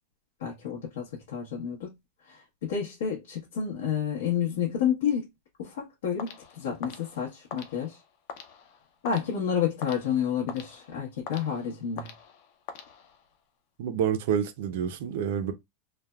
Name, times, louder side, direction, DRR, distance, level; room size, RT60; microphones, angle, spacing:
voice 1, 0.4-1.9 2.3-5.3 5.6-8.0 9.0-12.1, left 8 dB, 85° left, 0.9 m, -30 dB
sound 1, 6.2-13.4, left 7 dB, 40° left, 0.4 m, -45 dB
voice 2, 13.8-15.5, right 8 dB, 55° right, 0.4 m, -28 dB
3.2 x 2.1 x 2.2 m
supercardioid pair, 180°, 0 cm